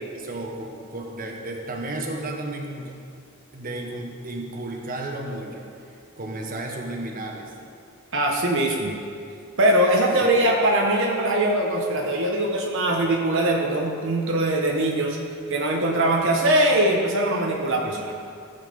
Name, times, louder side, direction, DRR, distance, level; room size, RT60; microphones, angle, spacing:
voice 1, 0.1-2.9 3.5-7.5 10.2-10.3, right 2 dB, 40° right, 1 dB, 1.3 m, -33 dB
voice 2, 8.1-9.0 9.6-15.2 15.5-18.1, right 1 dB, 65° right, 0 dB, 1.2 m, -21 dB
14.5 x 7.4 x 5.3 m, 2.4 s
head